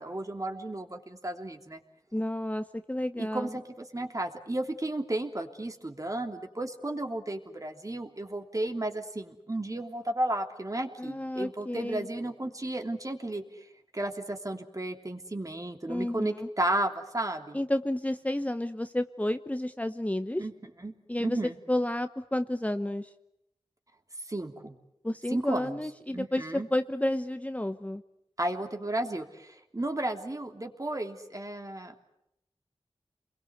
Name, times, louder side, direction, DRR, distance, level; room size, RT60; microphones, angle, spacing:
voice 1, 0.0-1.8 3.2-13.7 13.9-17.6 20.4-20.5 20.8-20.9 21.2-21.5 24.3-24.7 25.3-25.8 26.1-26.7 28.4-31.9, right 1 dB, 35° right, 5 dB, 3.2 m, -33 dB
voice 2, 2.1-3.6 11.0-12.1 15.9-16.5 17.5-20.4 21.1-21.4 21.7-23.1 25.0-28.0, left 1 dB, 15° left, 9 dB, 1.1 m, -31 dB
29.0 x 22.0 x 8.2 m, 0.80 s
wide cardioid pair, 50°, 10 cm